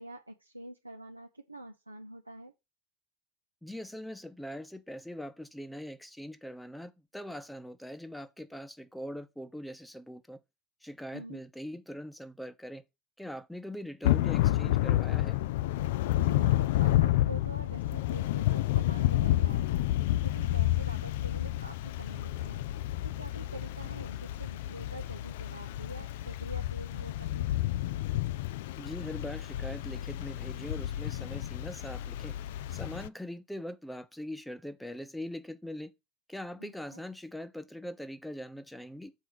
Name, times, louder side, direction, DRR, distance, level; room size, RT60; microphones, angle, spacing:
voice 1, 0.0-2.5 11.1-11.4 16.2-22.6 23.2-27.5 36.6-37.0, right 1 dB, 90° right, 0.7 m, -46 dB
voice 2, 3.6-10.4 10.8-12.8 13.2-15.4 28.8-32.3 32.7-35.9 36.3-39.1, equal, 5° left, 0.9 m, -42 dB
Thunder / Rain, 14.0-33.1, left 14 dB, 60° left, 0.4 m, -30 dB
6.4 x 4.6 x 6.0 m
figure-of-eight pair, 75°, 0 cm